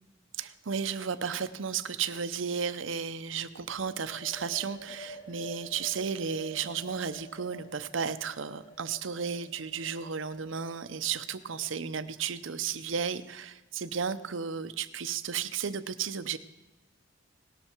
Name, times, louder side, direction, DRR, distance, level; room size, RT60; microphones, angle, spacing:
voice 1, 0.4-16.4, right 6 dB, 75° right, 12 dB, 0.7 m, -33 dB
sound 1, 3.9-11.5, right 1 dB, 45° left, 2.2 m, -50 dB
18.0 x 12.0 x 4.5 m, 1.1 s
head